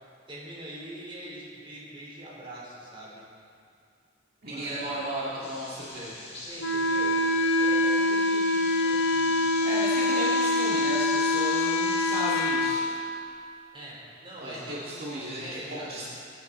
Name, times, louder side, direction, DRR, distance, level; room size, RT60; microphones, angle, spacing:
voice 1, 0.3-3.2 4.4-4.9 6.5-7.2 7.6-9.4 13.7-15.0 15.4-16.0, right 1 dB, 30° right, -5 dB, 3.8 m, -43 dB
voice 2, 4.4-6.3 9.6-12.9 14.4-16.0, equal, 55° right, -8 dB, 2.1 m, -34 dB
sound 1, 5.4-12.2, left 2 dB, 35° left, 3.9 m, -40 dB
Wind instrument woodwind instrument, 6.6-12.8, left 2 dB, 65° left, 0.9 m, -25 dB
22.0 x 9.6 x 4.2 m, 2.3 s
head